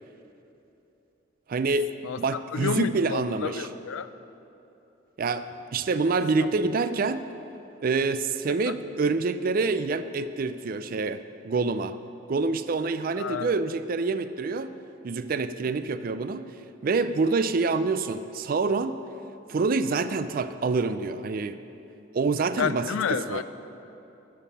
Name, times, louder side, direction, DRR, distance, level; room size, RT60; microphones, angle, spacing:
voice 1, 1.5-1.9 2.2-3.7 5.2-7.2 7.8-12.0 12.3-14.7 15.0-16.4 16.8-18.9 19.5-21.6 22.1-23.4, right 4 dB, 45° right, 12 dB, 0.4 m, -26 dB
voice 2, 2.5-4.1 6.4-6.5 8.7-8.8 13.2-13.6 22.6-23.4, left 6 dB, 85° left, 13 dB, 0.4 m, -30 dB
11.0 x 7.3 x 5.6 m, 3.0 s
head